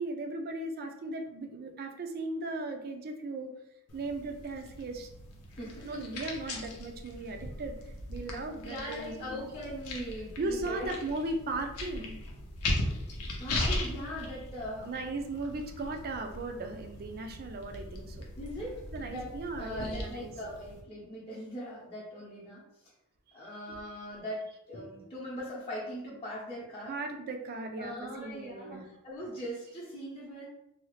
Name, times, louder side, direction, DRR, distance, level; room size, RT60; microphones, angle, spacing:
voice 1, 0.0-3.5 3.9-5.1 5.8-7.7 8.1-9.4 10.0-12.1 14.8-18.2 18.9-20.3 23.5-23.8 26.9-28.9, right 2 dB, 45° right, 5 dB, 0.4 m, -37 dB
sound 1, 3.9-20.8, left 1 dB, 85° left, 0.7 m, -39 dB
voice 2, 5.5-6.1 6.4-6.6 8.6-11.0 13.4-14.9 18.4-22.6 23.3-27.0 27.8-30.4, equal, 25° left, -8 dB, 0.7 m, -40 dB
2.7 x 2.3 x 3.1 m, 0.81 s
head